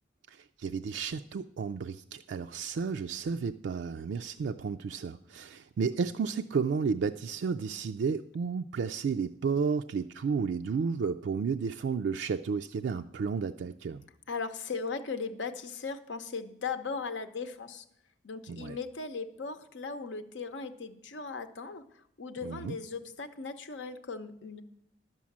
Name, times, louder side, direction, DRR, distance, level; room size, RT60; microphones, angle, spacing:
voice 1, 0.3-14.0 18.5-18.8 22.4-22.8, right 5 dB, 75° right, 7 dB, 0.3 m, -32 dB
voice 2, 14.3-17.8 18.2-21.8 22.2-24.6, left 4 dB, 90° left, 9 dB, 0.8 m, -38 dB
11.0 x 6.2 x 7.2 m, 0.77 s
head